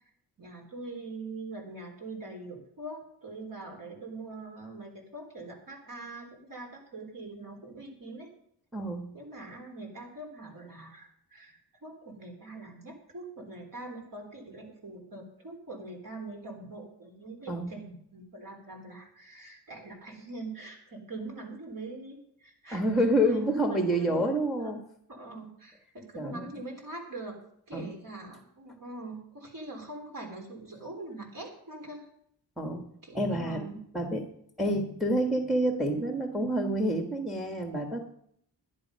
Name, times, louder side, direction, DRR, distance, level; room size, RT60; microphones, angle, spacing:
voice 1, 0.4-8.3 9.1-22.8 23.2-24.3 24.6-24.7 25.1-27.4 27.7-32.1 33.0-33.8, right 2 dB, 50° right, 1 dB, 3.8 m, -43 dB
voice 2, 8.7-9.1 17.5-17.7 22.7-24.8 26.1-26.6 27.7-27.9 32.6-32.8 33.1-33.7 33.9-34.3 34.6-38.1, right 1 dB, ahead, 4 dB, 1.4 m, -28 dB
11.0 x 11.0 x 5.4 m, 0.68 s
wide cardioid pair, 90°, 41 cm